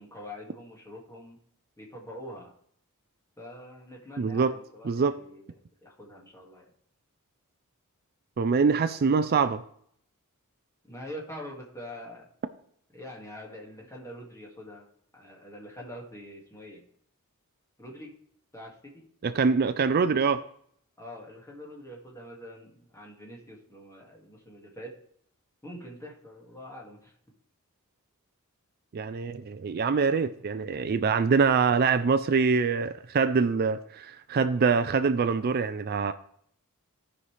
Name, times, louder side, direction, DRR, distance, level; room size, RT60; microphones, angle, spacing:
voice 1, 0.0-1.4 1.8-2.5 3.4-5.4 5.8-6.7 10.8-12.3 12.9-14.9 15.1-16.8 17.8-18.2 18.5-19.0 21.0-24.9 25.6-27.1, equal, 15° left, 2.0 m, -44 dB
voice 2, 4.2-4.5 4.8-5.1 8.4-9.6 19.2-20.4 28.9-36.1, right 5 dB, 45° right, 0.4 m, -24 dB
15.5 x 5.5 x 3.3 m
head